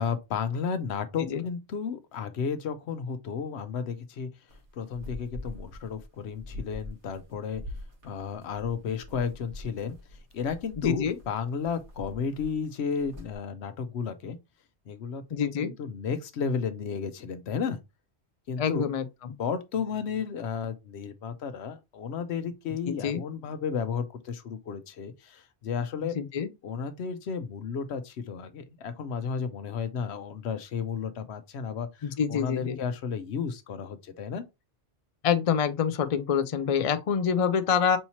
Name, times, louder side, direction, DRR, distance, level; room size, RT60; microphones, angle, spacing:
voice 1, 0.0-4.3 4.7-7.6 8.0-10.0 10.3-14.4 14.9-17.8 18.5-18.9 19.4-26.2 26.6-34.4, left 6 dB, 70° left, 0.9 m, -33 dB
sound 1, 4.5-13.4, left 1 dB, 80° right, 1.7 m, -44 dB
voice 2, 10.8-11.2 15.3-15.7 18.6-19.4 22.9-23.2 26.0-26.5 32.0-32.8 35.2-38.0, left 7 dB, 55° left, 0.4 m, -26 dB
5.5 x 2.9 x 2.8 m
omnidirectional pair, 1.1 m